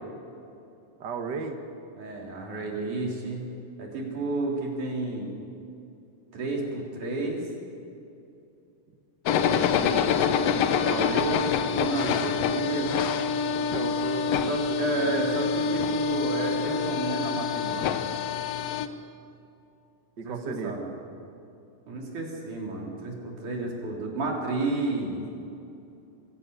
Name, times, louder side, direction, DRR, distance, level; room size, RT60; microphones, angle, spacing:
voice 1, 1.0-1.6 10.8-15.2 20.2-20.8, right 4 dB, 45° right, 5 dB, 1.5 m, -36 dB
voice 2, 2.0-3.5 3.8-5.3 6.3-7.4 10.8-11.2 11.8-12.9 14.5-18.1 20.2-20.9 21.9-25.2, right 2 dB, 70° right, -1 dB, 5.0 m, -31 dB
sound 1, 9.3-18.9, left 6 dB, 65° left, 1.8 m, -26 dB
23.0 x 17.0 x 8.3 m, 2.7 s
omnidirectional pair, 3.6 m